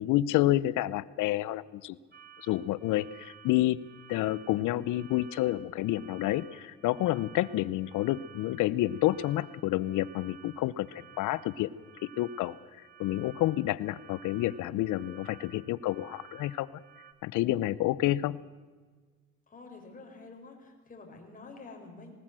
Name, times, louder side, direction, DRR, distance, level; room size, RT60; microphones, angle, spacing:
voice 1, 0.0-2.0 2.4-3.8 4.1-10.9 11.2-11.7 12.2-12.6 13.0-16.7 17.2-18.4, left 15 dB, 75° left, 19 dB, 0.8 m, -29 dB
sound 1, 2.1-17.1, right 9 dB, 30° right, 2.0 m, -54 dB
voice 2, 19.5-22.1, left 3 dB, 25° left, 2 dB, 4.9 m, -48 dB
19.0 x 19.0 x 7.6 m, 1.5 s
cardioid pair, 115°, 31 cm